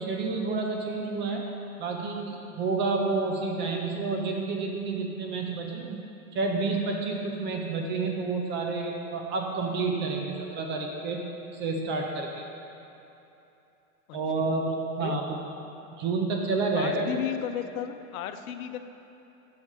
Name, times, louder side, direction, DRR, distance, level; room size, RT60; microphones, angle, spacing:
voice 1, 0.0-1.5 1.8-6.0 6.3-12.5 14.1-15.4 16.0-17.1, right 3 dB, 25° right, 1 dB, 0.4 m, -29 dB
voice 2, 14.1-14.5 15.0-15.2 16.8-18.8, left 10 dB, 80° left, 9 dB, 0.6 m, -34 dB
6.5 x 5.5 x 4.7 m, 2.9 s
supercardioid pair, 130°, 42 cm